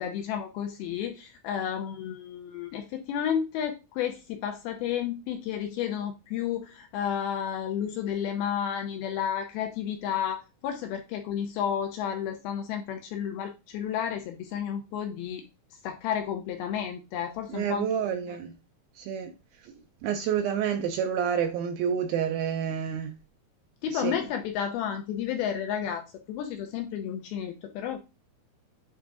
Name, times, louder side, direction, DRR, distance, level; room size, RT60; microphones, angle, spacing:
voice 1, 0.0-15.4 15.8-17.9 23.8-28.0, left 9 dB, 80° left, 2.4 m, -32 dB
voice 2, 17.5-18.6 19.0-19.3 20.0-23.1 23.9-24.2, right 8 dB, 85° right, 2.1 m, -28 dB
8.5 x 3.7 x 3.7 m
omnidirectional pair, 4.8 m